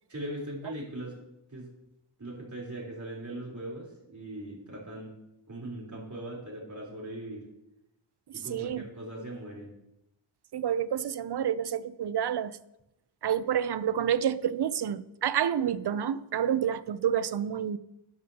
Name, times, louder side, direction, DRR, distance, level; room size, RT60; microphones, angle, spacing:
voice 1, 0.1-1.1 1.5-1.7 2.2-5.2 5.5-7.5 8.3-9.7, right 1 dB, 35° right, 3.9 m, -40 dB
voice 2, 8.5-8.8 10.5-12.6 13.2-17.8, right 9 dB, 55° right, 0.6 m, -29 dB
12.0 x 10.5 x 2.9 m
wide cardioid pair, 100°, 49 cm